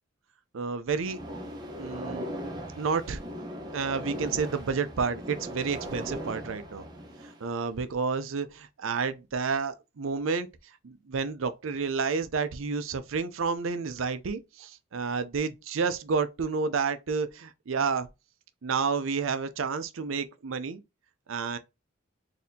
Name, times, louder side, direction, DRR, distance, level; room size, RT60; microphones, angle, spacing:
voice 1, 0.5-1.2 1.8-2.3 2.8-3.2 3.7-6.9 7.4-10.5 10.8-18.1 18.6-20.8 21.3-21.6, right 5 dB, 75° right, 0.5 m, -30 dB
sound 1, 1.1-7.5, equal, 20° right, 0.8 m, -39 dB
4.2 x 2.7 x 2.6 m
head